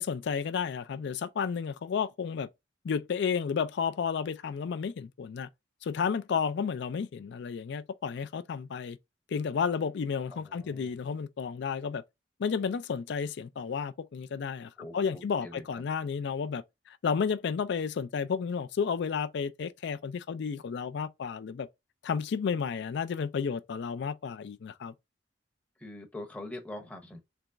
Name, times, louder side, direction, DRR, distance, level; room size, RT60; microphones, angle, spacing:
voice 1, 0.0-2.5 2.8-5.5 5.8-9.0 9.3-12.0 12.4-21.7 22.0-24.9, left 6 dB, 65° left, 0.4 m, -32 dB
voice 2, 10.3-10.9 14.8-15.8 25.8-27.2, left 1 dB, 10° left, 0.7 m, -44 dB
3.4 x 3.0 x 2.5 m
head